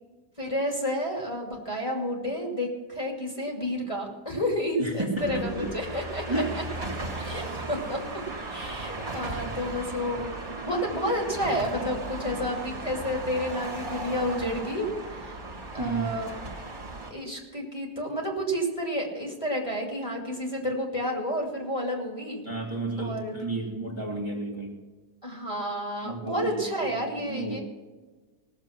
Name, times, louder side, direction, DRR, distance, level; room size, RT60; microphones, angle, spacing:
voice 1, 0.4-6.6 7.1-8.0 8.5-15.4 15.7-16.3 17.1-22.4 23.0-23.4 25.2-27.6, equal, 20° left, -1 dB, 2.5 m, -30 dB
voice 2, 4.8-5.7 6.3-6.6 7.2-7.5 15.8-16.2 22.4-24.8 26.0-27.6, right 3 dB, 15° right, -2 dB, 2.0 m, -32 dB
sound 1, 5.2-17.1, right 2 dB, 45° right, 2.3 m, -36 dB
18.5 x 7.3 x 5.9 m, 1.3 s
omnidirectional pair, 1.7 m